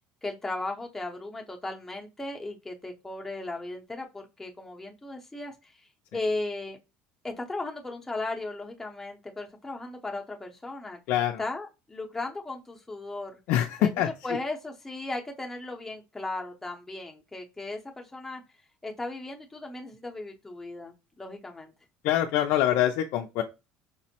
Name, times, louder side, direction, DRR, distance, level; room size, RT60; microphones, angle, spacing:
voice 1, 0.2-5.7 6.1-6.8 7.2-13.4 13.8-13.9 14.2-18.4 18.8-21.7, left 2 dB, 10° left, 1 dB, 0.7 m, -36 dB
voice 2, 11.1-11.4 13.5-14.4 22.0-23.4, left 11 dB, 70° left, 3 dB, 0.4 m, -25 dB
5.1 x 2.0 x 2.8 m, 0.27 s
cardioid pair, 135°, 4 cm